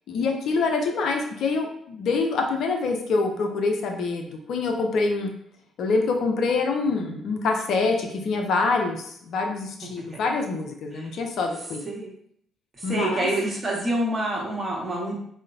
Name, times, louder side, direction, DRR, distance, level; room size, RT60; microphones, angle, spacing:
voice 1, 0.1-5.3 5.8-11.9 12.8-13.3, left 4 dB, 55° left, 3 dB, 0.4 m, -25 dB
voice 2, 12.7-15.2, right 1 dB, 30° right, -2 dB, 0.9 m, -27 dB
3.7 x 2.1 x 2.4 m, 0.68 s
figure-of-eight pair, 45°, 0 cm